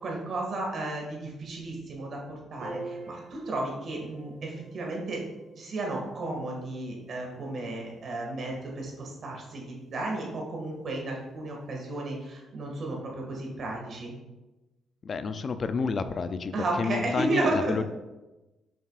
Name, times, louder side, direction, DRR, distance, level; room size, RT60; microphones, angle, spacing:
voice 1, 0.0-5.2 5.6-14.1 16.5-17.8, right 2 dB, 55° right, -1 dB, 1.9 m, -33 dB
Piano, 2.6-9.2, right 2 dB, 90° right, 1.9 m, -47 dB
voice 2, 15.0-17.8, left 5 dB, 45° left, 10 dB, 0.4 m, -30 dB
7.3 x 5.7 x 2.5 m, 1.1 s
cardioid pair, 90°, 0 cm